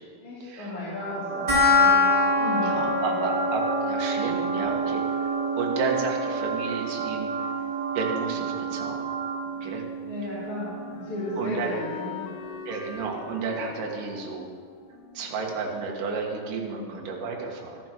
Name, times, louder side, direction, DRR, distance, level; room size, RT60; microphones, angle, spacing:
voice 1, 0.2-2.1 2.4-2.7 3.0-3.2 8.3-8.7 10.0-12.2 16.7-17.0, left 1 dB, 45° left, -11 dB, 4.2 m, -34 dB
sound 1, 0.9-9.7, right 4 dB, 85° right, 3.1 m, -32 dB
sound 2, 1.5-12.5, left 2 dB, 10° right, 2.2 m, -27 dB
voice 2, 2.7-5.0 5.6-7.3 8.0-9.1 9.6-9.8 11.4-11.7 12.7-14.5 15.1-17.8, right 4 dB, 60° right, 0 dB, 2.8 m, -31 dB
Wind instrument woodwind instrument, 9.6-16.4, left 6 dB, 85° left, 1.7 m, -43 dB
13.5 x 11.5 x 4.5 m, 2.2 s
omnidirectional pair, 5.0 m